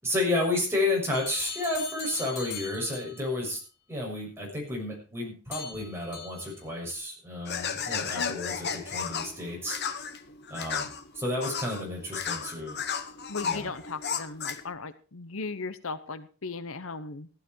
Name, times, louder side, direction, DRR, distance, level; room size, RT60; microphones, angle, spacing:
voice 1, 0.0-3.6 3.9-10.0 10.5-10.9 11.1-12.8 13.4-13.7, left 2 dB, 10° right, -1 dB, 6.6 m, -31 dB
sound 1, 1.1-3.3 5.5-6.6 6.9-7.0, left 7 dB, 85° left, 3.7 m, -40 dB
sound 2, 7.5-14.7, left 6 dB, 50° left, 1.3 m, -34 dB
voice 2, 13.3-17.3, left 4 dB, 65° left, 12 dB, 0.9 m, -37 dB
15.5 x 11.5 x 4.5 m, 0.36 s
head